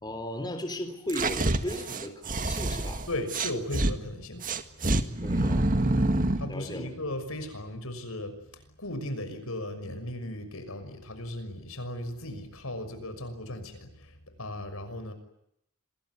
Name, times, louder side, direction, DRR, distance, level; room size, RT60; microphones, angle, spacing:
voice 1, 0.0-3.0 5.2-5.6 6.5-6.9, left 1 dB, 20° left, 6 dB, 3.5 m, -36 dB
sound 1, 1.1-3.9 4.4-6.5, right 2 dB, 40° right, 1.8 m, -27 dB
voice 2, 3.1-4.4 4.7-4.8 6.4-15.1, left 1 dB, 75° left, 9 dB, 6.1 m, -37 dB
27.5 x 21.0 x 9.7 m, 0.76 s
head